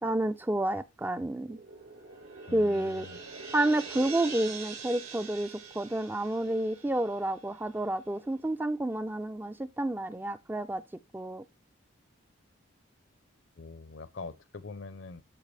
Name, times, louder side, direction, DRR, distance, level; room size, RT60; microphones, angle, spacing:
voice 1, 0.0-1.6 2.5-3.1 3.5-5.5 5.7-10.8 11.1-11.4, right 1 dB, 10° right, 0.3 m, -30 dB
sound 1, 1.3-7.9, right 5 dB, 85° right, 2.5 m, -44 dB
voice 2, 2.5-3.2 13.6-15.2, left 3 dB, 65° left, 0.7 m, -44 dB
12.5 x 4.4 x 3.3 m
head